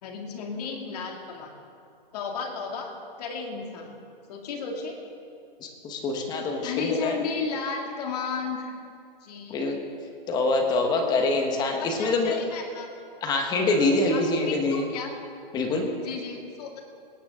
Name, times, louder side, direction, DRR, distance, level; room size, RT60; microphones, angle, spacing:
voice 1, 0.0-1.5 2.1-3.9 4.3-5.0 6.6-8.7 9.2-9.7 11.7-12.9 14.1-15.1 16.0-16.8, left 5 dB, 40° left, 2 dB, 2.5 m, -34 dB
voice 2, 5.6-7.1 9.5-9.8 10.3-12.4 13.2-14.8 15.5-15.8, left 2 dB, 15° left, 3 dB, 1.3 m, -25 dB
20.0 x 17.5 x 3.8 m, 2.4 s
hypercardioid pair, 155°, 29 cm